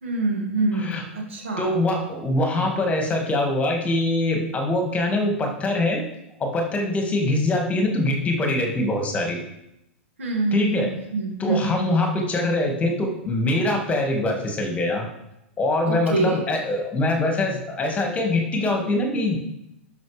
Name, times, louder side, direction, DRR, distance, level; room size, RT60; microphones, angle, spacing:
voice 1, 0.0-1.8 10.2-11.9 15.9-16.4, right 3 dB, 80° right, 0 dB, 2.4 m, -26 dB
voice 2, 0.7-1.0 1.6-6.1 6.4-9.4 10.5-10.9 11.4-15.1 15.6-19.4, left 2 dB, 20° left, 2 dB, 2.0 m, -23 dB
11.5 x 5.7 x 3.4 m, 0.84 s
hypercardioid pair, 100°, 7 cm